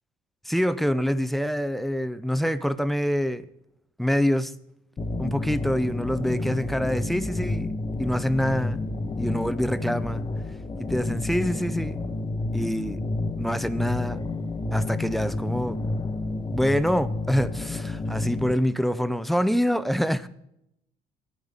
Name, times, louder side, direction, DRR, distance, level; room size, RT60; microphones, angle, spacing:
voice 1, 0.4-3.5 4.0-4.5 5.2-7.7 8.0-8.8 9.2-10.2 10.8-12.0 12.5-13.0 13.4-14.2 14.7-15.8 16.5-20.3, equal, ahead, 0.5 m, -25 dB
sound 1, 5.0-18.5, left 2 dB, 25° left, 0.9 m, -30 dB
14.5 x 9.9 x 3.7 m
cardioid pair, 110°, 17 cm